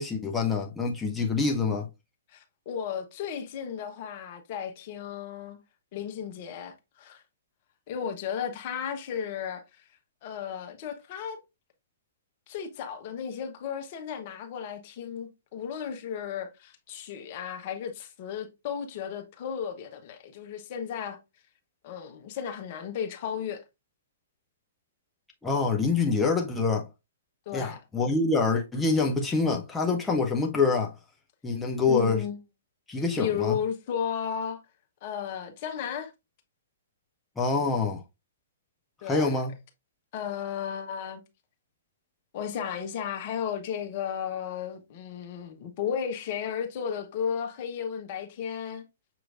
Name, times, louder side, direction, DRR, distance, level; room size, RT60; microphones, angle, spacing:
voice 1, 0.0-1.9 25.4-26.9 27.5-30.9 31.4-32.2 32.9-33.6 37.4-38.0 39.1-39.5, left 4 dB, 10° left, 0.6 m, -26 dB
voice 2, 2.3-5.6 5.9-7.2 7.9-9.8 10.2-11.4 12.5-21.2 21.8-23.6 27.5-27.8 31.9-32.4 33.2-34.6 35.0-36.1 39.0-39.4 40.1-41.2 42.3-48.8, left 8 dB, 40° left, 0.8 m, -34 dB
6.3 x 3.0 x 2.4 m
figure-of-eight pair, 120°, 0 cm